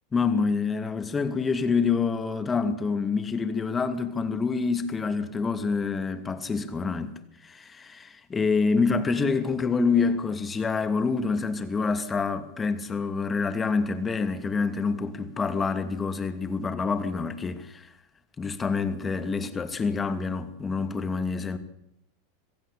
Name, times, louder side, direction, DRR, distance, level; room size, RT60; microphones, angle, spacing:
voice 1, 0.1-17.9 18.4-21.6, left 4 dB, 20° left, 2.6 m, -27 dB
25.5 x 15.5 x 8.6 m
hypercardioid pair, 90°, 0 cm